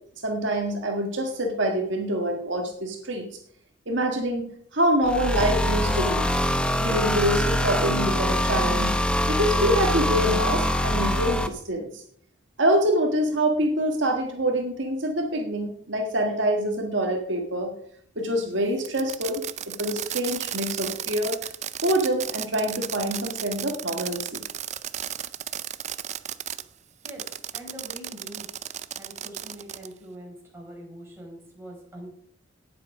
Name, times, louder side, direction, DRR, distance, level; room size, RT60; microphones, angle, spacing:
voice 1, 0.2-3.3 3.9-6.3 6.8-8.9 9.3-12.0 12.6-17.7 18.2-21.5 21.8-24.4, right 1 dB, 65° right, 2 dB, 1.8 m, -26 dB
sound 1, 5.0-11.5, left 1 dB, 5° left, 0.8 m, -24 dB
Fireworks, 18.8-26.6 27.0-29.9, right 10 dB, 35° right, 0.5 m, -34 dB
voice 2, 27.5-28.5 29.0-32.1, right 1 dB, 10° right, -2 dB, 4.7 m, -43 dB
18.0 x 7.9 x 4.9 m, 0.66 s
head